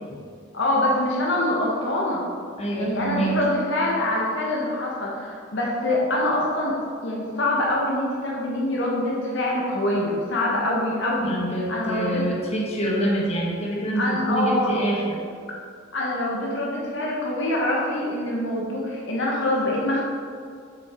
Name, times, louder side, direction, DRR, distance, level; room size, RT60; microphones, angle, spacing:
voice 1, 0.5-2.2 2.7-6.7 7.0-11.4 11.7-12.2 13.9-14.8 15.9-20.0, left 1 dB, 60° left, -3 dB, 1.2 m, -25 dB
voice 2, 2.6-3.4 11.2-15.2, right 1 dB, 30° left, -3 dB, 1.4 m, -26 dB
7.2 x 6.4 x 4.4 m, 2.2 s
head